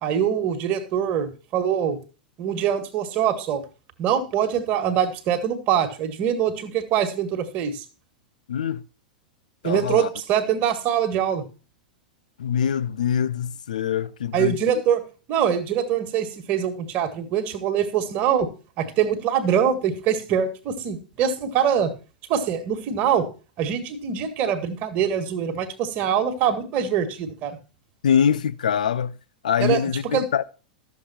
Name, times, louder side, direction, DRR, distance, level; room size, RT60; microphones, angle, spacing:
voice 1, 0.0-2.0 2.4-3.6 4.0-7.8 9.6-11.5 14.3-15.0 15.3-18.5 18.8-21.9 22.3-23.3 23.6-27.6 29.6-30.3, right 8 dB, 40° right, 1.8 m, -23 dB
voice 2, 8.5-8.8 9.6-10.1 12.4-14.6 28.0-29.2 29.4-30.4, left 8 dB, 65° left, 0.6 m, -23 dB
13.0 x 7.4 x 4.3 m
figure-of-eight pair, 90°, 4 cm